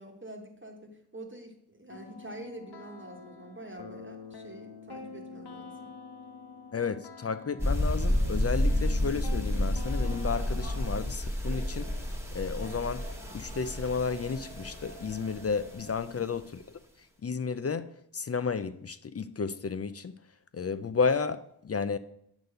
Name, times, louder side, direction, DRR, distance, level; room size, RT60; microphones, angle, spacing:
voice 1, 0.0-5.9 16.1-16.3, right 1 dB, 30° right, 1.2 m, -46 dB
sound 1, 1.9-11.1, left 5 dB, 75° left, 0.9 m, -46 dB
voice 2, 6.7-11.9 12.3-13.0 13.3-16.4 17.2-20.1 20.5-22.0, left 5 dB, 40° left, 0.4 m, -32 dB
sound 2, 7.6-16.0, left 1 dB, 5° right, 1.4 m, -31 dB
sound 3, 10.0-16.0, right 3 dB, 90° right, 1.9 m, -50 dB
8.0 x 4.1 x 6.6 m
wide cardioid pair, 85°, 40 cm